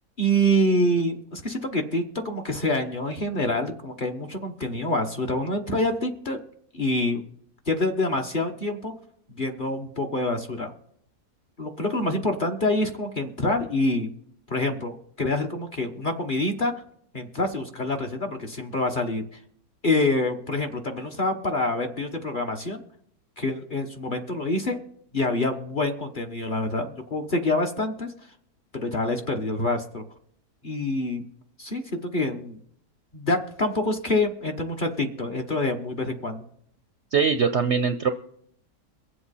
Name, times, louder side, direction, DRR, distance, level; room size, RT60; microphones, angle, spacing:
voice 1, 0.2-6.4 6.7-7.2 7.7-8.9 9.4-10.7 11.6-14.1 14.5-16.7 17.1-19.2 19.8-22.8 23.4-24.8 25.1-28.1 28.7-30.0 30.6-31.2 31.6-32.6 33.1-36.5, left 1 dB, 35° left, 3 dB, 1.1 m, -26 dB
voice 2, 37.1-38.1, right 6 dB, 60° right, 8 dB, 0.7 m, -22 dB
23.0 x 7.9 x 4.2 m, 0.67 s
omnidirectional pair, 1.7 m